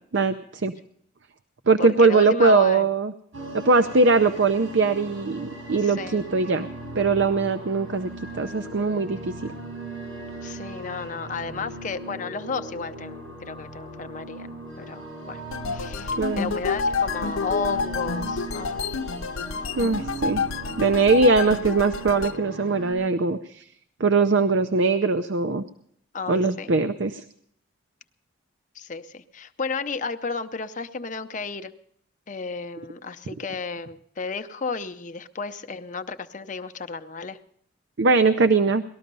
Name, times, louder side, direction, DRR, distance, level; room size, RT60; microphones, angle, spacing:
voice 1, 0.1-0.7 1.7-3.1 3.6-6.7 7.0-9.5 16.2-16.6 19.8-20.4 20.8-23.7 24.0-25.6 26.3-27.2 38.0-38.8, right 3 dB, 60° right, 9 dB, 0.6 m, -21 dB
voice 2, 1.8-2.9 5.8-6.2 10.4-14.5 14.8-15.4 15.7-18.8 26.1-26.7 28.7-31.7 32.3-37.4, left 4 dB, 40° left, 9 dB, 0.6 m, -33 dB
sound 1, 3.3-22.9, right 2 dB, 80° right, 7.5 m, -38 dB
sound 2, 15.5-22.4, left 5 dB, 90° left, 0.7 m, -29 dB
19.0 x 13.0 x 5.4 m, 0.68 s
head